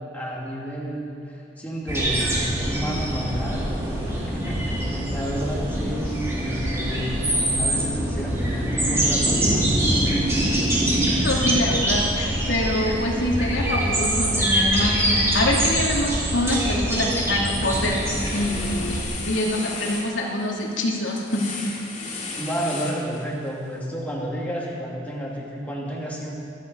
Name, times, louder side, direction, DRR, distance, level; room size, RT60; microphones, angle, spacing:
voice 1, 0.1-7.2 7.6-9.8 22.3-26.4, equal, 10° left, -4 dB, 2.6 m, -31 dB
sound 1, 1.9-19.0, right 1 dB, 15° right, 3.5 m, -24 dB
voice 2, 11.2-21.5, left 1 dB, 90° left, -2 dB, 2.7 m, -25 dB
sound 2, 16.3-16.6 17.0-23.5, left 4 dB, 40° left, 2.6 m, -35 dB
24.5 x 10.5 x 5.5 m, 2.4 s
head